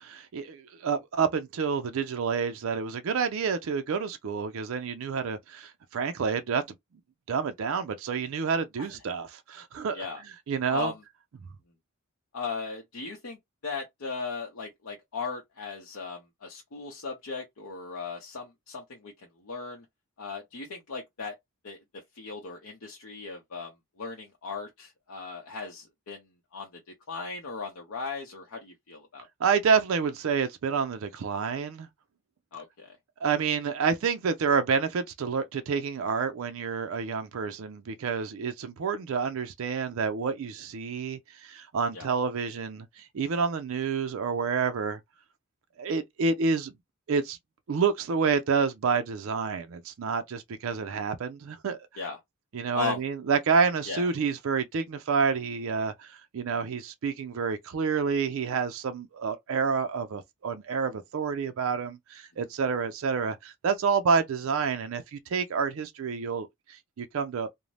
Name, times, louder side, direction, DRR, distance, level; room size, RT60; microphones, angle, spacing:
voice 1, 0.0-6.6 7.3-10.0 10.5-10.9 29.4-31.9 33.2-45.0 45.8-46.7 47.1-47.4 47.7-51.8 52.5-67.5, right 5 dB, 70° right, 0.4 m, -28 dB
voice 2, 10.7-11.0 12.3-13.4 13.6-19.1 19.4-19.8 20.2-21.4 21.6-21.8 22.2-23.7 24.0-26.2 26.5-26.8 27.1-29.3 32.5-33.0 41.9-42.1 52.0-52.2 52.7-53.0 53.9-54.1, left 5 dB, 85° left, 0.6 m, -37 dB
2.6 x 2.0 x 3.1 m
head